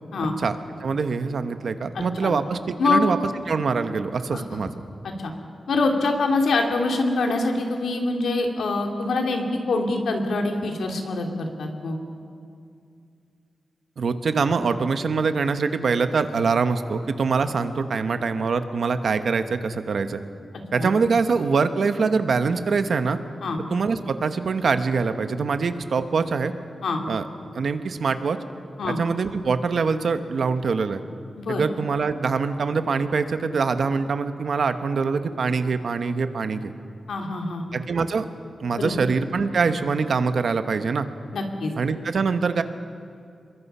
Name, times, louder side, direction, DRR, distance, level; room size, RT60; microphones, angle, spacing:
voice 1, 0.4-3.2 3.5-4.7 14.0-20.2 20.7-23.2 23.7-26.5 27.1-27.2 27.5-28.4 28.9-31.0 31.5-36.7 37.7-38.3 38.6-41.1 41.8-42.6, right 5 dB, 60° right, 9 dB, 1.2 m, -24 dB
voice 2, 1.9-2.4 2.8-3.1 4.3-4.6 5.0-5.3 5.7-12.0 20.7-20.9 23.4-23.6 26.8-27.0 28.8-29.0 31.4-31.6 37.1-37.8 38.7-38.9 41.3-41.7, left 3 dB, 90° left, 2 dB, 2.8 m, -25 dB
27.0 x 22.5 x 5.6 m, 2.4 s
wide cardioid pair, 160°, 0 cm